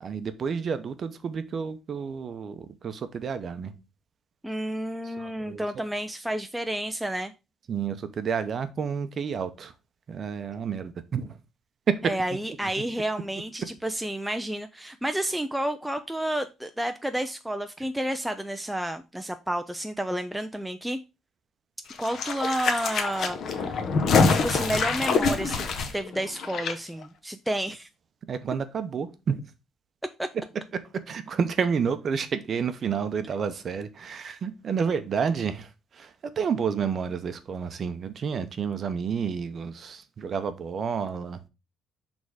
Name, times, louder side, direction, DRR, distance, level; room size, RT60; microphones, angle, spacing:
voice 1, 0.0-3.7 5.0-5.6 7.7-9.7 10.1-11.4 11.9-12.0 12.6-12.7 28.3-29.5 31.1-41.4, right 6 dB, 35° right, 0.6 m, -30 dB
voice 2, 4.4-7.3 12.0-21.0 22.0-23.8 24.4-25.7 25.9-27.9 30.2-30.3, right 1 dB, 5° right, 0.3 m, -30 dB
sound 1, 21.9-26.7 27.0-27.1, left 4 dB, 45° left, 0.9 m, -25 dB
6.4 x 3.5 x 4.8 m
cardioid pair, 175°, 0 cm